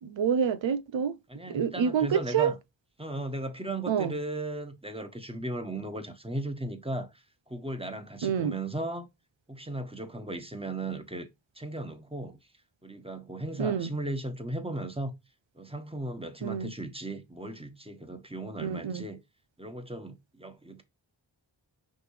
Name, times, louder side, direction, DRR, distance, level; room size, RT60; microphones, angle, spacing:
voice 1, 0.0-1.2 1.5-2.5 3.9-4.1 8.2-8.5 13.6-13.9 16.4-16.7 18.6-19.1, right 7 dB, 85° right, 0.8 m, -27 dB
voice 2, 1.3-2.6 3.0-9.1 9.5-11.3 11.5-12.4 12.8-15.1 15.5-19.2 19.6-20.8, right 1 dB, 10° right, 1.5 m, -36 dB
6.3 x 5.4 x 3.3 m
cardioid pair, 70°, 44 cm